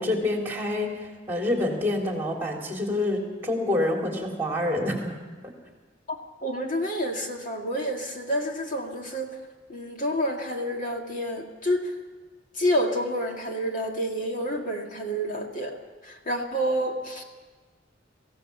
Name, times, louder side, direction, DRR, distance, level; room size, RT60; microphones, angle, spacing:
voice 1, 0.0-5.2 5.4-5.5, left 1 dB, 10° right, 0 dB, 3.8 m, -27 dB
voice 2, 6.1-9.3 9.7-11.9 12.6-15.8 16.0-17.2, equal, 45° left, 1 dB, 2.0 m, -29 dB
24.0 x 16.5 x 7.1 m, 1.3 s
head